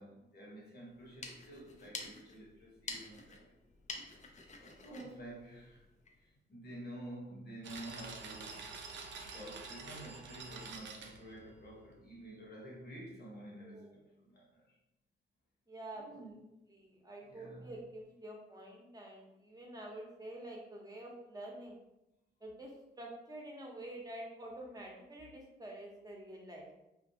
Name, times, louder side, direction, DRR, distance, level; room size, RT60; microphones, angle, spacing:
voice 1, 0.0-3.5 4.1-5.9 6.1-8.7 9.1-14.8 15.9-16.4 17.2-17.7, right 1 dB, 55° left, -3 dB, 1.1 m, -50 dB
sound 1, 0.9-6.2, left 3 dB, 40° left, 0.5 m, -49 dB
sound 2, 7.6-12.0, right 4 dB, 70° right, 0.4 m, -48 dB
voice 2, 13.6-13.9 15.7-16.4 16.7-21.8 22.4-22.7 23.0-26.7, right 1 dB, 20° right, -2 dB, 0.8 m, -48 dB
2.5 x 2.3 x 2.7 m, 0.91 s
cardioid pair, 70°, 19 cm